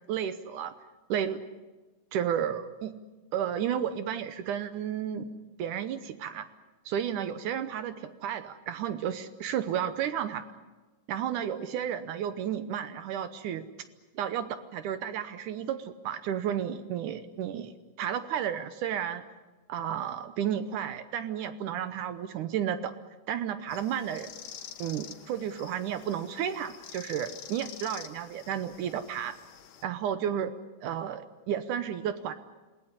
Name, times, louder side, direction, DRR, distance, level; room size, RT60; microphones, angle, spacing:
voice 1, 0.1-0.7 1.1-1.4 2.1-2.9 3.3-5.3 5.6-6.5 6.9-10.4 11.1-13.7 14.2-17.7 18.0-19.2 19.7-23.0 23.3-24.3 24.8-29.3 29.8-30.5 30.8-32.3, right 9 dB, 75° right, 11 dB, 2.3 m, -32 dB
sound 1, 23.7-29.8, left 9 dB, 70° left, 2.7 m, -47 dB
27.5 x 18.0 x 9.6 m, 1.2 s
omnidirectional pair, 3.8 m